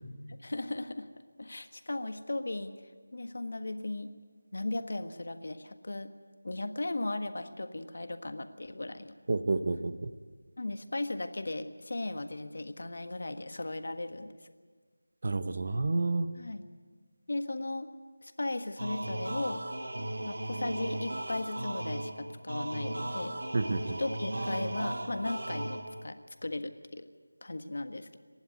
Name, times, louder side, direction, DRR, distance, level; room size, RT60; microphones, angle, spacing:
voice 1, 0.4-1.1 1.4-2.7 3.1-4.1 4.5-6.1 6.4-9.1 10.6-14.3 16.3-16.7 17.3-17.9 18.2-19.6 20.2-23.3 24.0-26.1 26.4-27.1 27.4-28.1, left 2 dB, 60° left, 8 dB, 1.5 m, -36 dB
voice 2, 9.3-10.1 15.2-16.3 23.5-24.0, right 3 dB, 40° right, 11 dB, 0.8 m, -29 dB
sound 1, 18.8-26.2, right 1 dB, 60° right, 2.1 m, -36 dB
28.0 x 11.5 x 9.4 m, 1.5 s
figure-of-eight pair, 175°, 0 cm